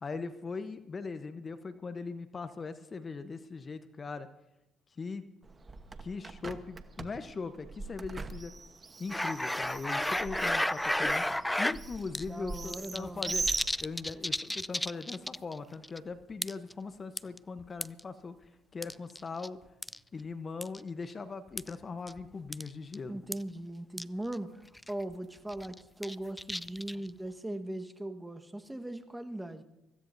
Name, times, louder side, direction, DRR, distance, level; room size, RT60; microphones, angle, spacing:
voice 1, 0.0-4.3 5.0-5.3 6.0-8.5 9.0-13.5 13.8-18.4 18.7-19.6 20.1-23.2, left 4 dB, 35° left, 11 dB, 0.9 m, -40 dB
Bird, 5.4-14.3, right 4 dB, 30° right, 1.1 m, -41 dB
sound 1, 9.1-11.8 12.1-12.2 12.5-15.5 15.8-16.0 16.4-16.7 17.2-18.0 18.8-19.5 19.8-20.0 20.6-20.8 21.6-21.7 22.1-22.2 22.5-22.7 22.9-23.0 23.3-23.4 24.0-24.1 24.3-24.4 24.8-25.0 25.5-27.1, left 1 dB, 5° left, 0.4 m, -32 dB
voice 2, 12.3-13.3 23.1-24.6 24.9-29.6, right 1 dB, 10° right, 7 dB, 1.4 m, -39 dB
24.0 x 15.5 x 2.7 m, 0.92 s
hypercardioid pair, 55°, 0 cm